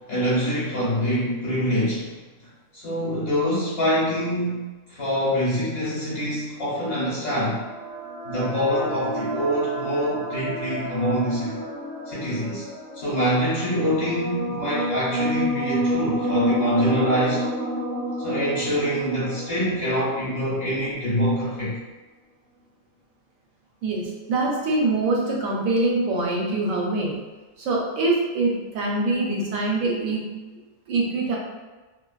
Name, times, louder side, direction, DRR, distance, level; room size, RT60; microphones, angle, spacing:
voice 1, 0.1-2.1 2.7-7.6 8.2-11.6 12.1-12.7 12.9-17.4 18.2-21.8, equal, 50° left, -8 dB, 0.9 m, -25 dB
sound 1, 6.8-20.9, right 1 dB, 15° right, 0.5 m, -30 dB
voice 2, 23.8-27.2 27.6-30.4 30.9-31.4, right 2 dB, 75° right, -2 dB, 1.0 m, -24 dB
2.5 x 2.2 x 2.3 m, 1.2 s
omnidirectional pair, 1.5 m